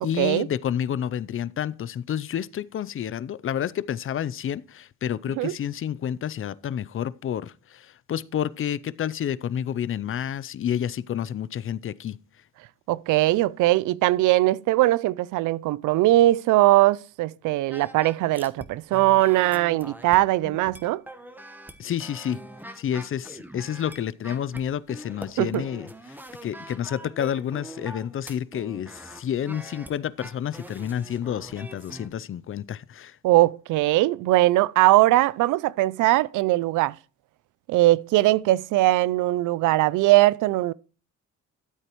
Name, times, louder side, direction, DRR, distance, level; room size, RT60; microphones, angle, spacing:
voice 1, 0.0-12.2 21.8-22.4 22.8-33.2, left 9 dB, 45° left, 0.5 m, -30 dB
voice 2, 12.9-21.0 25.4-25.6 33.2-37.0 37.7-40.7, right 17 dB, 85° right, 0.5 m, -20 dB
sound 1, 17.7-18.7 18.9-32.1, right 1 dB, 5° right, 1.2 m, -43 dB
13.0 x 7.9 x 3.1 m
cardioid pair, 90°, 30 cm